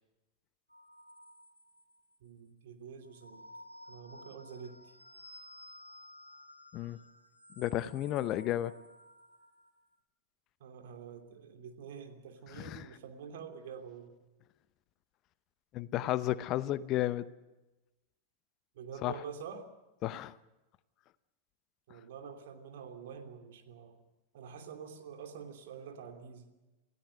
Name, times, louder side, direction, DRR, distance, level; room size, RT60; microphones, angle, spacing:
sound 1, 0.7-2.1 3.0-9.7, left 1 dB, 90° left, 2.2 m, -54 dB
voice 1, 2.2-3.4 3.9-4.9 10.6-14.2 18.7-19.7 21.9-24.0 24.3-26.5, right 6 dB, 55° right, 6 dB, 2.9 m, -47 dB
voice 2, 7.6-8.7 12.5-12.9 15.7-17.3 19.0-19.1 20.0-20.3, left 14 dB, 35° left, 16 dB, 0.8 m, -33 dB
27.5 x 17.0 x 6.5 m, 1.1 s
figure-of-eight pair, 90°, 0 cm